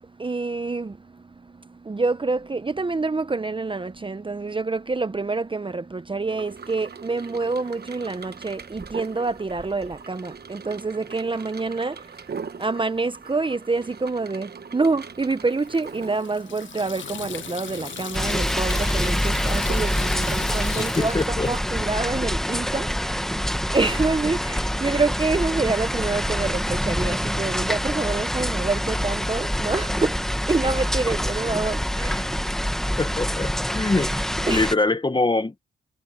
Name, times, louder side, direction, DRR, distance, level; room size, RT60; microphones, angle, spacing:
voice 1, 0.0-12.3 12.6-33.0 34.0-34.1 34.4-34.8, right 3 dB, 25° right, 0.8 m, -27 dB
sound 1, 6.3-20.6, right 5 dB, 50° right, 1.3 m, -41 dB
Water tap faucet / Sink (filling or washing), 15.5-22.2, left 10 dB, 65° left, 0.6 m, -38 dB
sound 2, 18.1-34.8, equal, ahead, 1.3 m, -26 dB
voice 2, 20.8-21.5 33.0-34.1 34.4-35.6, left 2 dB, 20° left, 1.5 m, -24 dB
cardioid pair, 70°, 21 cm